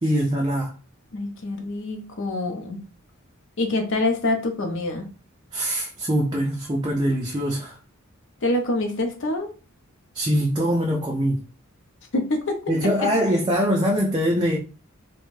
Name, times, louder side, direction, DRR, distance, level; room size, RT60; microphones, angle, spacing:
voice 1, 0.0-0.7 5.5-7.7 10.1-11.4 12.7-14.6, equal, 20° right, 0.3 m, -23 dB
voice 2, 1.1-2.8 3.6-5.1 8.4-9.5 12.1-12.9, left 2 dB, 60° left, 0.6 m, -26 dB
2.5 x 2.2 x 3.1 m
head